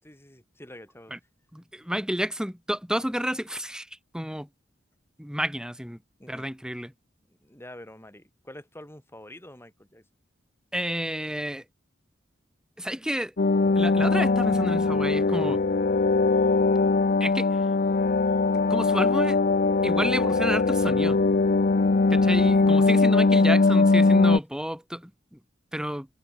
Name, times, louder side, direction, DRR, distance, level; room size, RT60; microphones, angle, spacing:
voice 1, 0.0-1.1 6.2-6.5 7.3-10.0, left 1 dB, 15° left, 7.6 m, -46 dB
voice 2, 1.5-4.5 5.2-6.0 6.3-6.9 10.7-11.6 12.8-13.3 13.7-15.6 17.2-17.7 18.7-19.4 19.8-21.2 22.1-25.4 25.7-26.1, equal, 5° right, 4.6 m, -30 dB
sound 1, 13.4-24.4, left 3 dB, 50° left, 0.6 m, -21 dB
head